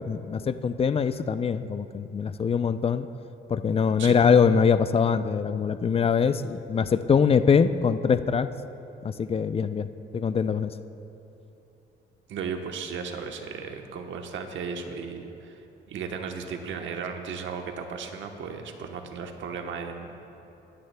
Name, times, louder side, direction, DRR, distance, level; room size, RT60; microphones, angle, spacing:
voice 1, 0.0-3.1 3.5-8.5 9.0-9.9 10.1-10.7, left 6 dB, 30° left, 12 dB, 0.4 m, -23 dB
voice 2, 12.3-15.6 15.9-20.1, right 5 dB, 75° right, 4 dB, 1.0 m, -35 dB
20.5 x 9.9 x 2.2 m, 2.9 s
cardioid pair, 90°, 20 cm